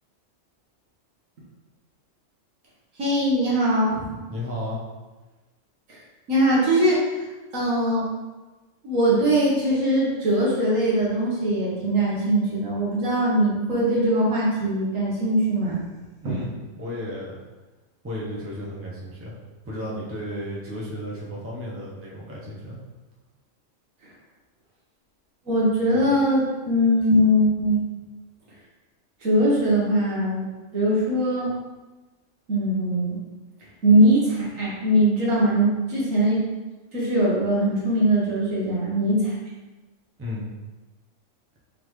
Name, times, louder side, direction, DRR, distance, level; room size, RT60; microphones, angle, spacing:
voice 1, 3.0-4.1 5.9-6.0 6.3-7.0 7.5-8.1 8.8-15.8 16.2-16.4 25.5-27.8 29.2-30.5 30.7-31.5 32.5-33.2 33.8-36.4 36.9-39.3, right 1 dB, 85° right, -6 dB, 1.6 m, -21 dB
voice 2, 4.3-4.8 16.2-17.4 18.0-19.4 19.7-22.8 40.2-40.5, left 1 dB, 15° right, -5 dB, 0.6 m, -33 dB
3.8 x 3.7 x 3.1 m, 1.2 s
omnidirectional pair, 1.3 m